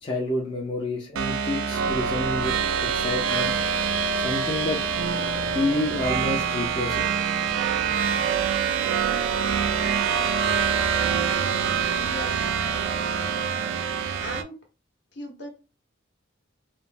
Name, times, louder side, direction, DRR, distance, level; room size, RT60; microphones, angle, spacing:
voice 1, 0.0-2.5 2.8-3.6 4.1-4.8 5.5-7.1, left 1 dB, 25° left, 0.5 m, -28 dB
sound 1, 1.2-14.4, right 6 dB, 70° right, 0.3 m, -25 dB
voice 2, 11.8-12.6 14.2-14.6 15.1-15.5, left 1 dB, 55° left, 0.8 m, -38 dB
3.0 x 2.1 x 2.4 m
head